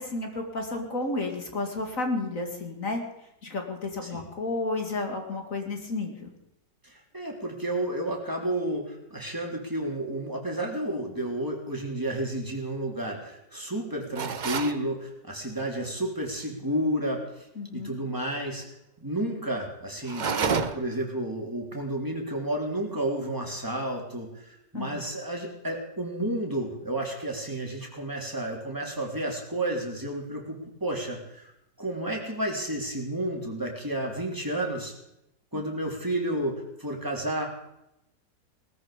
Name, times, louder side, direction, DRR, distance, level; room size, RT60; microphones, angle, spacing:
voice 1, 0.0-3.0 3.4-6.3 17.6-17.9 24.7-25.0 35.5-35.6, left 2 dB, 50° left, 3 dB, 2.4 m, -32 dB
voice 2, 6.8-17.5 17.7-18.6 19.0-31.5 31.8-34.9 35.5-37.4, right 1 dB, 10° right, 0 dB, 3.4 m, -31 dB
sound 1, 14.1-14.8 20.0-21.0, right 6 dB, 55° right, 0.5 m, -29 dB
19.5 x 14.0 x 5.1 m, 0.84 s
omnidirectional pair, 1.9 m